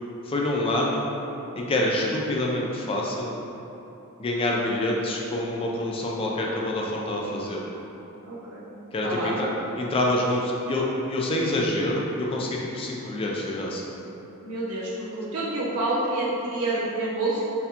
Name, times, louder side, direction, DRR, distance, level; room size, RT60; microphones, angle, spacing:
voice 1, 0.3-1.0 1.6-3.4 4.2-7.6 8.9-9.5 9.8-13.8, left 1 dB, 25° left, -2 dB, 0.3 m, -26 dB
voice 2, 8.2-8.6 9.0-9.4 14.4-17.5, right 2 dB, 70° right, -6 dB, 0.8 m, -28 dB
4.1 x 2.6 x 2.7 m, 3.0 s
head